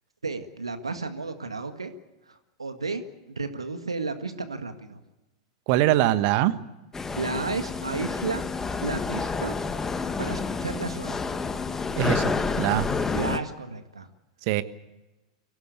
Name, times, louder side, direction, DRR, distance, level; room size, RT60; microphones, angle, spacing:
voice 1, 0.2-1.9 2.3-3.0 3.3-5.0 7.2-8.4 8.8-9.5 10.2-11.2 13.1-14.1, right 3 dB, 85° right, 8 dB, 1.8 m, -32 dB
voice 2, 5.7-6.5 12.0-12.9 14.5-14.6, right 14 dB, 50° right, 12 dB, 1.4 m, -23 dB
sound 1, 6.9-13.4, left 4 dB, 15° left, 1.4 m, -29 dB
24.5 x 17.0 x 8.3 m, 1.1 s
figure-of-eight pair, 95°, 3 cm